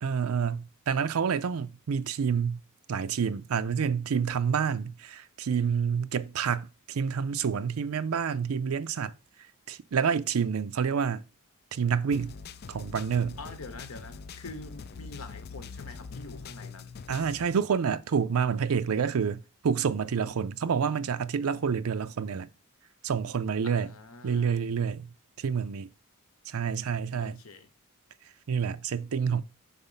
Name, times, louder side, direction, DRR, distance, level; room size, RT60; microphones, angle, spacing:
voice 1, 0.0-2.6 2.9-9.1 9.7-11.2 11.7-12.3 12.7-13.4 17.1-22.5 23.0-23.9 24.2-25.9 26.5-27.4 28.5-29.4, right 6 dB, 80° right, 0.5 m, -28 dB
sound 1, 12.1-17.5, left 5 dB, 50° left, 0.4 m, -43 dB
voice 2, 13.4-16.9 23.6-24.5 27.2-27.7, left 3 dB, 75° left, 1.0 m, -45 dB
5.5 x 4.0 x 5.5 m
head